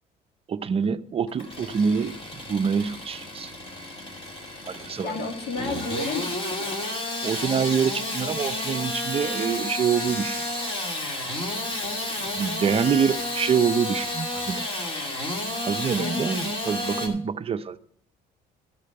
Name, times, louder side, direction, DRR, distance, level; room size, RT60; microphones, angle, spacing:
voice 1, 0.5-2.1 2.5-3.5 4.6-5.3 7.2-10.4 12.3-14.7 15.7-17.8, right 6 dB, 35° right, 0.5 m, -26 dB
Engine starting / Sawing, 1.3-17.1, left 1 dB, 30° left, 2.5 m, -31 dB
voice 2, 5.0-6.8 16.0-16.5, left 3 dB, 80° left, 2.3 m, -32 dB
13.0 x 5.0 x 6.8 m
cardioid pair, 110°, 17 cm